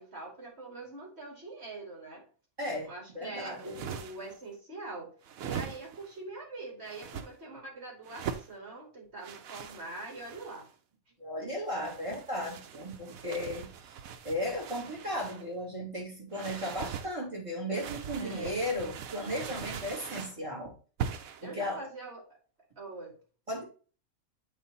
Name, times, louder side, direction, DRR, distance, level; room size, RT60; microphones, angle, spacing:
voice 1, 0.0-2.2 2.8-5.1 5.4-10.7 18.2-18.6 21.4-22.2 22.8-23.2, right 2 dB, 50° right, -1 dB, 2.8 m, -43 dB
voice 2, 2.6-3.7 11.2-13.7 14.2-20.7 21.4-21.8 23.5-23.6, equal, 25° right, -3 dB, 2.5 m, -35 dB
sound 1, 3.5-4.4 5.2-6.1 6.9-7.3 8.0-8.5 9.2-10.7 11.7-15.5 16.3-17.1 17.7-20.4 21.0-21.5, right 7 dB, 85° right, 1.1 m, -41 dB
8.1 x 3.2 x 3.9 m, 0.38 s
omnidirectional pair, 1.4 m